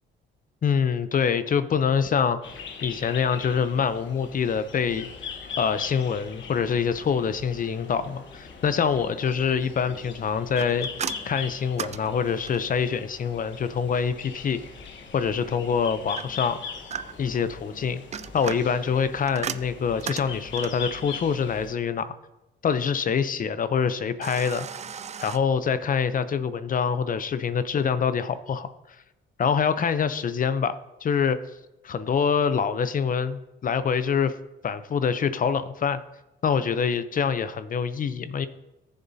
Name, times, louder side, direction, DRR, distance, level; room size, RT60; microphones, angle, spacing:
voice 1, 0.6-2.4 2.8-5.1 5.6-10.9 11.2-14.6 15.1-16.6 17.2-18.0 18.3-22.2 22.6-24.7 25.2-28.7 29.4-31.4 31.8-34.3 34.6-36.0 36.4-38.5, left 6 dB, 45° left, 13 dB, 0.6 m, -25 dB
sound 1, 2.4-21.7, left 5 dB, 70° left, 1.2 m, -41 dB
Cassette Noise When Got In, 10.6-12.8 16.2-17.4 17.9-20.9 24.2-25.4, right 7 dB, 35° right, 0.4 m, -36 dB
15.0 x 7.0 x 2.7 m, 0.98 s
cardioid pair, 90°, 20 cm